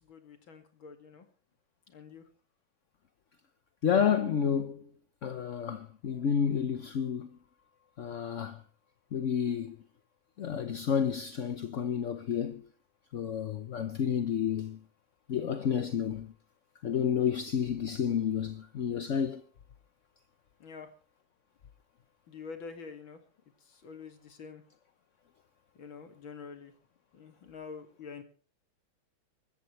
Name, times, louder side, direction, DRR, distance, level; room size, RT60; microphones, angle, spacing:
voice 1, 0.0-1.3 1.9-2.3 20.6-20.9 22.3-23.2 23.6-24.6 25.7-26.7 27.1-28.2, left 5 dB, 70° left, 2.9 m, -46 dB
voice 2, 3.8-4.8 5.2-7.3 8.0-8.6 9.1-9.8 10.4-12.6 13.1-14.8 15.3-16.3 16.8-19.4, left 7 dB, 50° left, 0.9 m, -30 dB
24.5 x 14.0 x 3.2 m
omnidirectional pair, 2.3 m